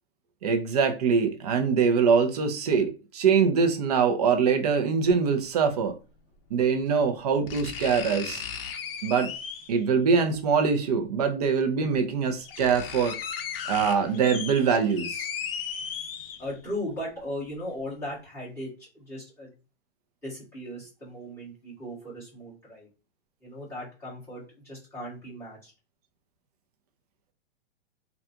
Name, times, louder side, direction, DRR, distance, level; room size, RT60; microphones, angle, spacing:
voice 1, 0.4-6.0 6.5-8.4 9.0-9.3 9.7-13.2 13.7-15.3, right 6 dB, 40° right, 0.5 m, -23 dB
sound 1, 5.0-5.1 6.6-6.7 7.5-9.8 11.2-11.3 11.9-12.0 12.3-16.7 17.1-17.2, left 7 dB, 65° left, 0.6 m, -36 dB
voice 2, 16.4-19.5 20.2-22.9 23.4-25.7, left 1 dB, 10° left, 1.7 m, -37 dB
3.4 x 2.4 x 2.7 m
hypercardioid pair, 165°, 31 cm